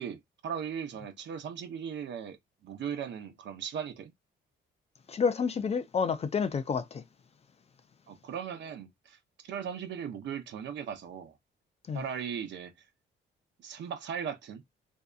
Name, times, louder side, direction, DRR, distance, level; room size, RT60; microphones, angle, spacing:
voice 1, 0.0-2.4 2.6-4.1 8.1-11.4 11.9-12.7 13.6-14.6, right 8 dB, 65° right, 0.7 m, -38 dB
voice 2, 5.1-7.0 11.9-12.0, left 6 dB, 30° left, 0.4 m, -29 dB
2.7 x 2.3 x 2.3 m
cardioid pair, 90°, 20 cm